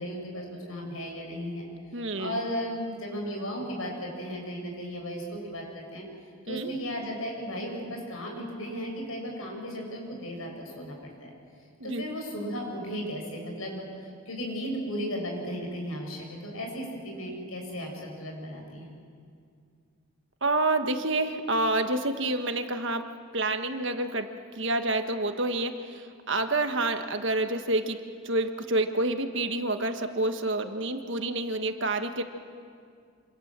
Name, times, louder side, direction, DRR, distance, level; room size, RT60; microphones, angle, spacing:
voice 1, 0.0-1.7 2.2-6.0 6.4-11.3 11.8-18.9, equal, 80° left, 1 dB, 7.2 m, -35 dB
voice 2, 1.9-2.4 6.5-6.7 11.8-12.0 20.4-23.1 23.3-28.0 28.2-32.2, right 2 dB, 60° right, 6 dB, 1.6 m, -28 dB
27.0 x 27.0 x 7.6 m, 2.3 s
head